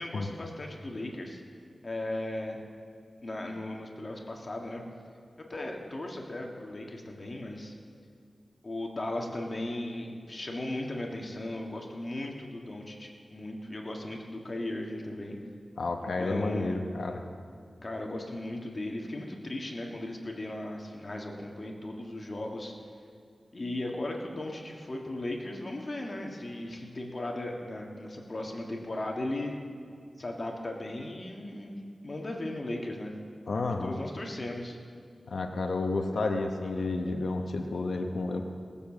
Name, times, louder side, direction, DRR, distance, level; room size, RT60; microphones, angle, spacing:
voice 1, 0.0-1.4 1.8-2.6 3.2-4.8 5.4-7.7 8.6-15.4 16.0-16.8 17.8-22.7 23.5-29.5 30.2-33.1 33.5-34.8, left 1 dB, 40° left, 1 dB, 1.7 m, -37 dB
voice 2, 15.8-17.2 33.5-34.0 35.3-38.4, left 3 dB, 80° left, 4 dB, 0.9 m, -31 dB
19.0 x 7.0 x 7.2 m, 2.2 s
wide cardioid pair, 95°, 0 cm